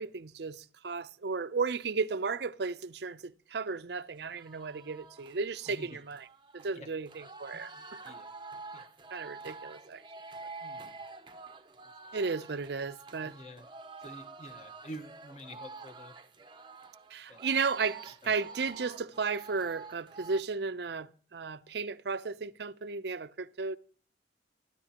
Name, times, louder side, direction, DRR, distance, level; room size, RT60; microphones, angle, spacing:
voice 1, 0.0-6.3 6.5-7.7 9.1-10.0 12.1-13.3 17.1-23.8, right 4 dB, 60° right, 0.6 m, -34 dB
sound 1, 4.3-20.4, right 3 dB, 25° right, 0.7 m, -48 dB
voice 2, 5.7-6.0 6.7-6.9 7.5-8.3 8.7-8.8 10.6-11.0 12.0-12.2 13.2-13.6 14.0-16.2 17.3-17.4 18.2-18.3, equal, 35° left, 1.3 m, -48 dB
25.0 x 13.0 x 2.9 m
head